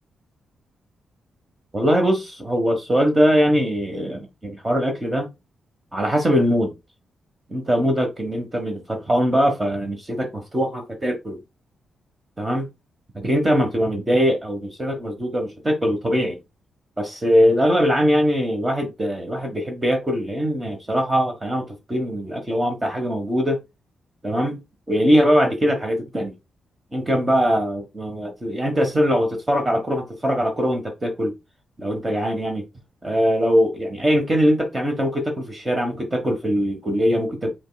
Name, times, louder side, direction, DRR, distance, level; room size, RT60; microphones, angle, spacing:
voice 1, 1.7-5.3 5.9-6.7 7.5-11.4 12.4-12.7 13.1-16.4 17.0-23.6 24.2-24.6 24.9-26.3 26.9-31.3 31.8-32.6 33.0-37.5, equal, 25° right, 1.2 m, -21 dB
5.3 x 4.4 x 2.2 m
cardioid pair, 80°, 0 cm